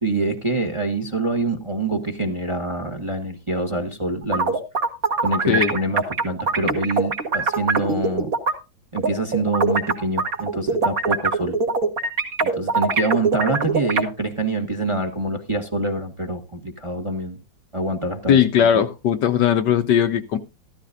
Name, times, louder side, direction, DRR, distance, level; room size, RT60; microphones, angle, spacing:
voice 1, 0.0-4.5 5.2-8.3 8.9-11.5 12.4-17.4 17.7-18.7, right 2 dB, 20° right, 1.1 m, -25 dB
sound 1, 4.2-8.5 9.0-14.0, right 4 dB, 45° right, 2.0 m, -22 dB
voice 2, 18.3-20.4, left 9 dB, 65° left, 1.3 m, -18 dB
14.0 x 13.0 x 2.6 m
omnidirectional pair, 2.2 m